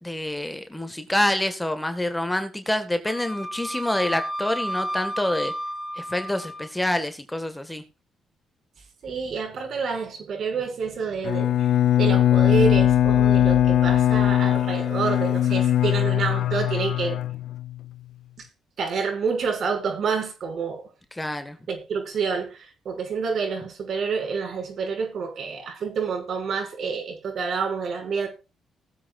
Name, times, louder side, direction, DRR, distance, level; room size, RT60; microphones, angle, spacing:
voice 1, 0.0-5.5 6.0-7.8 21.1-21.6, left 1 dB, 10° left, 1.8 m, -27 dB
Wind instrument woodwind instrument, 3.1-6.7, equal, 10° right, 2.7 m, -32 dB
voice 2, 9.0-11.7 12.0-17.2 18.4-18.5 18.8-20.8 21.7-28.3, right 5 dB, 60° right, 6.3 m, -28 dB
Bowed string instrument, 11.2-17.9, left 12 dB, 70° left, 0.4 m, -20 dB
20.0 x 7.9 x 2.5 m
cardioid pair, 90°, 0 cm